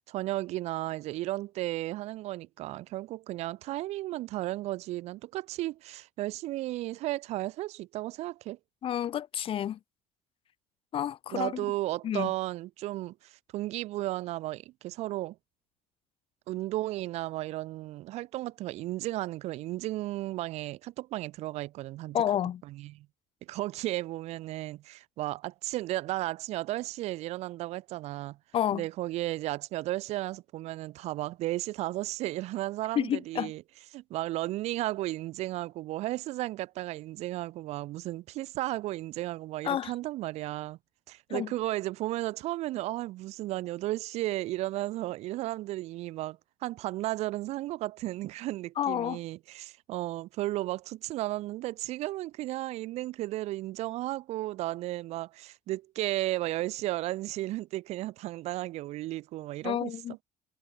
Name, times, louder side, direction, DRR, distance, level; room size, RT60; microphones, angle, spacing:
voice 1, 0.0-8.6 11.3-15.4 16.5-22.2 22.6-23.1 23.5-28.4 28.7-33.6 33.9-40.8 41.1-60.2, right 16 dB, 70° right, 1.5 m, -34 dB
voice 2, 8.8-9.8 10.9-11.6 12.0-12.3 22.1-22.6 28.5-28.8 32.9-33.5 39.6-39.9 41.3-41.5 48.8-49.2 59.6-60.1, left 10 dB, 50° left, 1.5 m, -30 dB
supercardioid pair, 90°, 11 cm